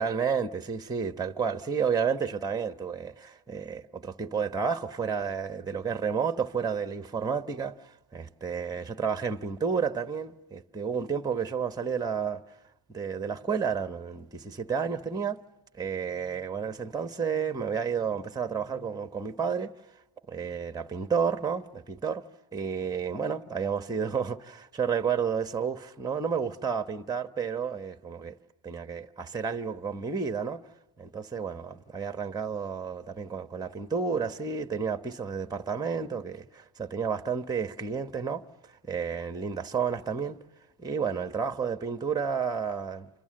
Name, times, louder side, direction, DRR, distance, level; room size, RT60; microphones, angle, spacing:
voice 1, 0.0-12.4 12.9-15.4 15.8-19.7 20.3-22.2 22.5-28.3 28.6-30.6 31.0-38.4 38.9-40.4 40.8-43.1, right 6 dB, 10° right, 1.0 m, -31 dB
29.5 x 26.0 x 7.7 m
cardioid pair, 115°, 50 cm